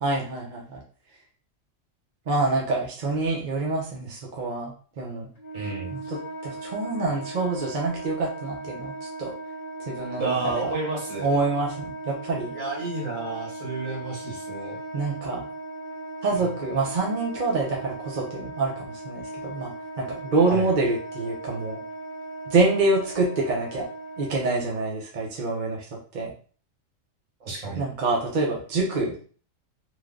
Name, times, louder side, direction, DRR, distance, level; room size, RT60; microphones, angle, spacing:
voice 1, 0.0-0.8 2.3-5.3 5.9-6.2 6.4-8.9 9.2-9.3 9.9-10.7 11.2-12.5 14.9-15.5 16.2-19.7 20.0-21.8 22.5-23.9 24.2-25.8 26.1-26.3 27.8-29.2, right 3 dB, 45° right, -1 dB, 0.7 m, -26 dB
Wind instrument woodwind instrument, 5.4-24.9, right 2 dB, 45° left, 0.8 m, -38 dB
voice 2, 5.5-6.0 10.2-11.3 12.5-14.8 20.4-20.7 27.4-27.8, right 3 dB, 70° right, -1 dB, 1.7 m, -31 dB
3.2 x 2.2 x 3.7 m, 0.41 s
omnidirectional pair, 1.4 m